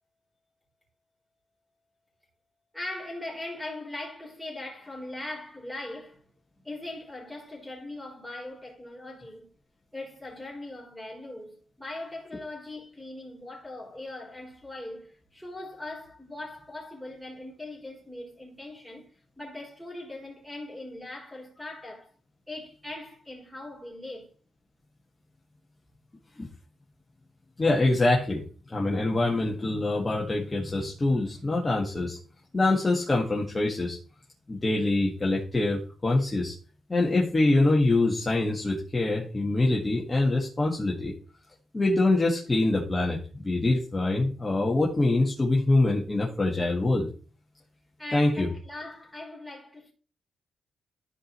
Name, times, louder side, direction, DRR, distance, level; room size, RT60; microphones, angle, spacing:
voice 1, 2.7-9.5 9.9-19.1 19.4-22.1 22.5-24.3 26.3-26.4 48.0-49.9, left 2 dB, ahead, 3.8 m, -40 dB
voice 2, 27.6-28.4 28.7-32.2 32.5-34.0 34.5-36.5 36.9-41.1 41.7-47.1 48.1-48.5, left 2 dB, 20° left, 1.7 m, -24 dB
14.0 x 4.9 x 3.1 m
cardioid pair, 115°, 0 cm